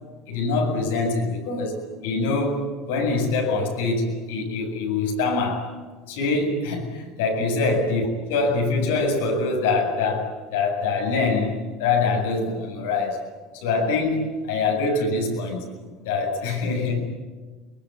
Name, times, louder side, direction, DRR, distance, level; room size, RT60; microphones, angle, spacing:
voice 1, 0.3-5.7 6.1-13.2 13.5-15.7 16.0-17.0, left 3 dB, 85° left, 2 dB, 7.5 m, -24 dB
23.0 x 22.5 x 9.9 m, 1.4 s
supercardioid pair, 105°, 0 cm